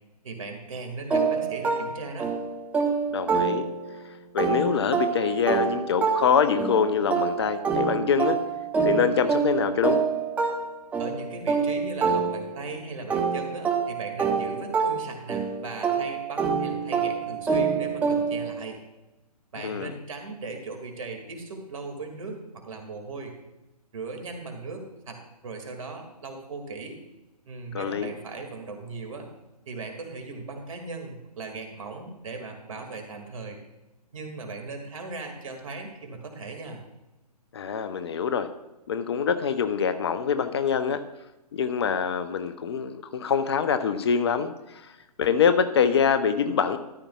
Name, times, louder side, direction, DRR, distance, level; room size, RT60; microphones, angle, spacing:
voice 1, 0.2-2.3 11.0-18.8 19.5-23.4 23.9-27.0 27.5-29.3 29.7-33.6 34.1-36.8, right 3 dB, 55° right, 4 dB, 2.2 m, -38 dB
sound 1, 1.1-4.0 4.4-12.7 13.1-18.5, right 5 dB, 5° right, 0.8 m, -26 dB
voice 2, 3.1-3.7 4.3-8.4 8.8-10.0 19.6-19.9 27.7-28.1 37.5-38.5 38.9-41.0 41.5-44.5 45.2-46.8, left 7 dB, 40° left, 10 dB, 0.6 m, -24 dB
13.5 x 11.5 x 2.4 m, 0.99 s
figure-of-eight pair, 135°, 21 cm